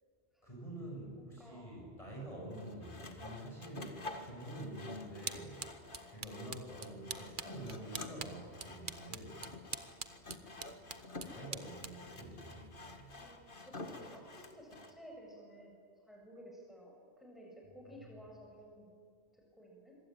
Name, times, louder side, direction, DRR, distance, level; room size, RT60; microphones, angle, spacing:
voice 1, 0.4-5.6 6.1-9.4 11.2-13.2, right 1 dB, 30° left, -2 dB, 7.2 m, -47 dB
voice 2, 1.2-1.7 13.0-15.8 16.1-18.9 19.3-19.9, equal, ahead, -1 dB, 7.5 m, -55 dB
Sawing, 2.5-14.9, left 2 dB, 50° left, 2.2 m, -49 dB
sound 1, 4.6-13.3, right 5 dB, 45° right, 1.3 m, -48 dB
26.0 x 24.0 x 9.3 m, 2.1 s
omnidirectional pair, 1.2 m